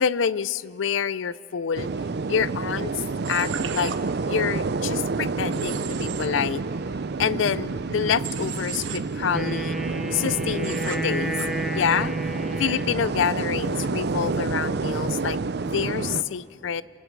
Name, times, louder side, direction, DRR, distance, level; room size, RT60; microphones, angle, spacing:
voice 1, 0.0-1.9 2.3-3.9 4.2-6.6 7.2-9.8 10.1-11.4 11.7-12.1 12.6-16.8, left 7 dB, 70° left, 18 dB, 0.4 m, -27 dB
sound 1, 1.7-16.2, right 4 dB, 55° right, 0.5 m, -29 dB
Human voice / Train, 3.2-4.0 5.5-6.3 8.2-9.0 10.6-11.0 11.4-11.5, right 8 dB, 80° right, 1.1 m, -35 dB
Wind instrument woodwind instrument, 9.3-13.3, right 1 dB, ahead, 0.9 m, -32 dB
30.0 x 20.5 x 4.7 m, 2.5 s
head